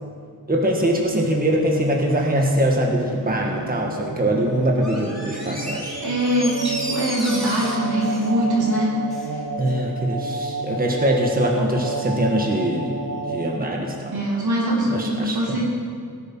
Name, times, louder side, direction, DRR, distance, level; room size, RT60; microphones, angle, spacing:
voice 1, 0.5-6.0 9.6-13.0 13.3-14.2 14.9-15.6, right 1 dB, 25° right, 0 dB, 1.6 m, -22 dB
sound 1, 0.8-13.6, right 3 dB, 60° right, 1.2 m, -32 dB
Door, 4.8-9.3 9.7-9.8, equal, ahead, 3.9 m, -34 dB
voice 2, 6.0-8.9 9.3-9.4 14.1-15.6, right 1 dB, 85° right, -5 dB, 4.1 m, -22 dB
18.0 x 9.7 x 6.1 m, 2.2 s
wide cardioid pair, 120°, 37 cm